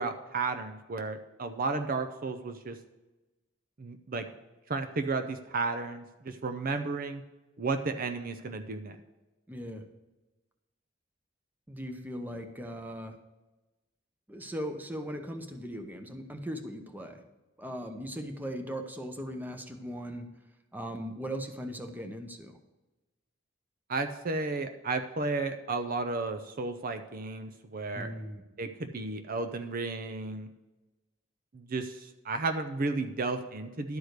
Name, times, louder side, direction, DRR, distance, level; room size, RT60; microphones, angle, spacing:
voice 1, 0.0-2.8 3.8-4.2 4.7-7.2 7.6-9.0 23.9-28.1 28.6-30.5 31.5-34.0, right 3 dB, 50° right, 8 dB, 0.6 m, -33 dB
voice 2, 9.5-9.8 11.7-13.2 14.3-17.2 17.6-20.3 20.7-22.6 27.9-28.4, equal, 10° right, 6 dB, 0.8 m, -38 dB
12.0 x 4.9 x 6.5 m, 1.1 s
head